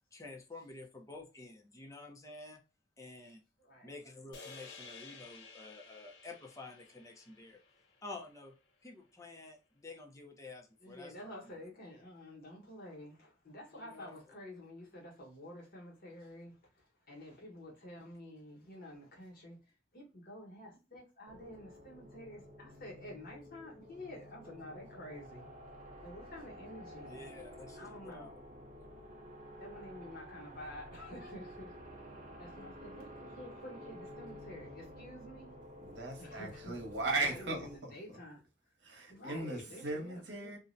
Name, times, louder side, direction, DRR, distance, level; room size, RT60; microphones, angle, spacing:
voice 1, 0.1-2.6 3.0-3.4 3.8-7.6 8.0-8.6 8.8-11.5 13.7-14.2 27.0-28.3, left 3 dB, 20° left, 0.5 m, -50 dB
voice 2, 3.6-3.9 10.8-25.5 26.0-27.2 27.7-28.3 29.6-31.7 32.4-33.1 33.4-35.5 36.2-36.8 37.2-38.4 39.1-40.5, left 1 dB, 55° left, 1.1 m, -50 dB
sound 1, 4.3-8.7, left 4 dB, 75° left, 0.6 m, -54 dB
sound 2, 21.3-37.8, equal, 45° right, 0.6 m, -51 dB
voice 3, 35.8-38.2 38.8-40.6, right 3 dB, 75° right, 1.0 m, -38 dB
2.5 x 2.1 x 2.5 m
head